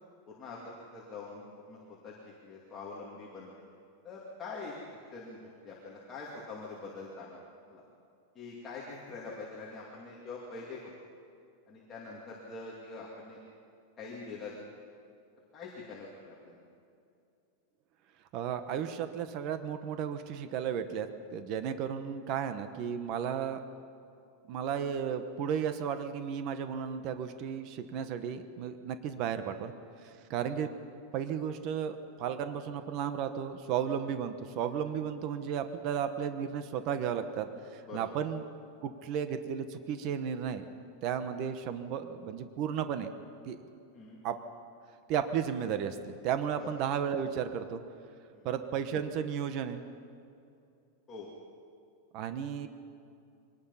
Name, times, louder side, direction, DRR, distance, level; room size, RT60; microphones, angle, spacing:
voice 1, 0.3-0.6 0.9-1.8 2.0-2.1 2.4-3.5 4.0-4.7 5.1-7.4 7.7-7.8 8.3-10.9 11.7-13.4 14.0-14.5 15.5-16.6 30.3-30.4 37.9-38.1 43.9-44.2 46.6-46.7 48.3-48.5 51.1-51.3, left 4 dB, 15° left, -5 dB, 2.5 m, -44 dB
voice 2, 18.3-23.6 24.5-29.7 30.0-30.7 31.1-38.4 38.8-40.7 41.0-43.1 43.5-43.6 44.2-44.4 45.1-47.8 48.4-49.8 52.1-52.7, right 8 dB, 35° right, 9 dB, 1.0 m, -34 dB
24.0 x 19.0 x 5.7 m, 2.6 s
supercardioid pair, 170°, 0 cm